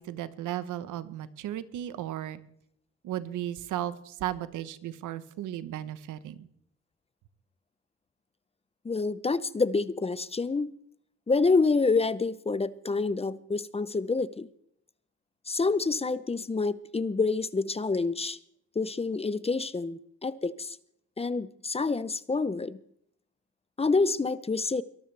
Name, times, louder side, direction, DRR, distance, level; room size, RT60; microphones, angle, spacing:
voice 1, 0.0-2.4 3.0-6.5, right 12 dB, 85° right, 14 dB, 1.0 m, -35 dB
voice 2, 8.8-10.7 11.3-14.5 15.5-18.4 18.8-20.8 21.2-22.8 23.8-24.8, left 4 dB, 20° left, 17 dB, 0.7 m, -27 dB
22.5 x 13.5 x 3.4 m, 0.70 s
cardioid pair, 90°, 30 cm